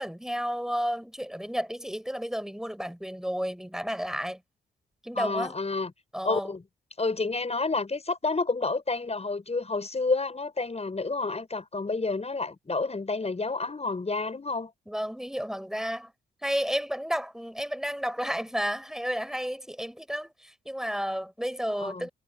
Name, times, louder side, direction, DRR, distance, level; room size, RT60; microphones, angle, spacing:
voice 1, 0.0-4.4 5.0-5.6 6.1-6.5 14.9-16.1 16.4-22.1, equal, ahead, 7.6 m, -32 dB
voice 2, 5.1-5.9 6.2-6.6 7.0-14.7 21.8-22.1, left 3 dB, 30° left, 6.8 m, -29 dB
hypercardioid pair, 45°, 21 cm